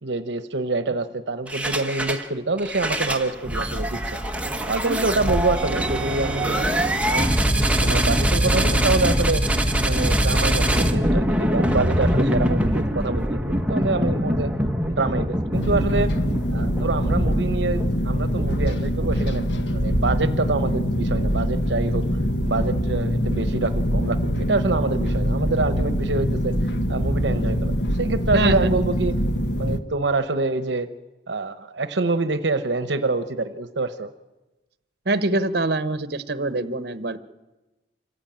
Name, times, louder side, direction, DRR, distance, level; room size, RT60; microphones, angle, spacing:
voice 1, 0.0-4.2 4.7-6.7 7.0-7.3 7.8-9.4 9.8-14.5 14.9-16.1 16.5-22.0 22.4-26.5 26.9-29.1 29.6-30.9 31.3-34.1, right 3 dB, 80° right, 10 dB, 0.9 m, -26 dB
sound 1, 1.5-2.3 2.6-19.5, equal, 5° right, 1.3 m, -23 dB
sound 2, 15.5-29.8, equal, 75° left, 1.3 m, -24 dB
voice 2, 28.3-28.7 35.0-37.2, right 2 dB, 60° right, 12 dB, 1.1 m, -24 dB
26.5 x 15.0 x 8.8 m, 1.1 s
head